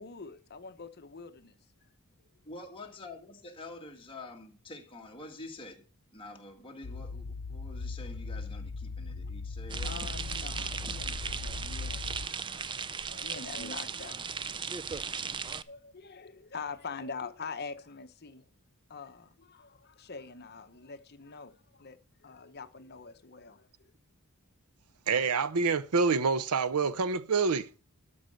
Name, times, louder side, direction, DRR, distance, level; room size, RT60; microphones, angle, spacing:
voice 1, 0.0-1.6 9.8-14.1 15.1-18.4 18.9-23.7, left 5 dB, 45° left, 0.9 m, -44 dB
voice 2, 2.4-5.8 6.1-10.0 13.5-13.8 14.1-14.2, left 2 dB, 25° left, 1.8 m, -47 dB
sound 1, 6.8-12.3, left 4 dB, 85° left, 0.6 m, -39 dB
sound 2, 9.7-15.6, right 6 dB, 20° right, 0.4 m, -37 dB
voice 3, 25.1-27.7, right 4 dB, 85° right, 0.7 m, -27 dB
13.0 x 5.5 x 6.4 m
head